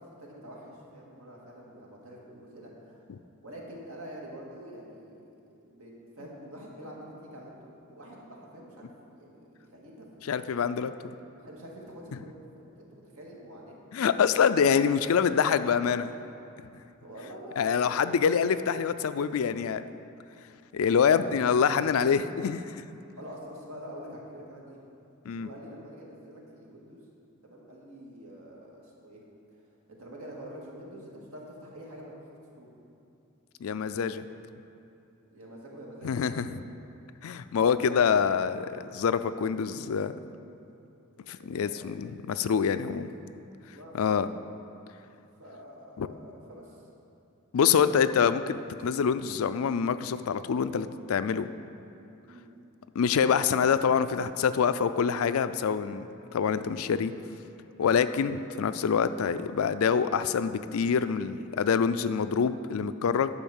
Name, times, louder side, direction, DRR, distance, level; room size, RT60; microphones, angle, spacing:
voice 1, 0.1-3.1 3.4-5.2 5.7-10.1 10.3-10.9 11.4-13.8 14.1-14.5 17.0-18.2 21.1-21.7 23.2-24.8 25.3-27.0 27.4-29.2 29.9-32.1 32.6-32.7 35.3-36.6 37.7-37.9 38.1-38.2 41.1-42.0 43.7-44.4 45.4-46.9 52.3-52.5, equal, 80° right, -3 dB, 2.0 m, -46 dB
voice 2, 10.3-10.9 13.9-16.1 17.6-19.8 20.7-22.6 25.3-25.5 33.6-34.2 36.0-36.6 37.2-40.1 41.3-43.1 43.9-44.3 46.0-46.1 47.5-51.5 53.0-56.1 56.3-57.1 57.8-63.3, left 6 dB, 75° left, 12 dB, 0.4 m, -26 dB
11.0 x 5.0 x 7.1 m, 2.8 s
head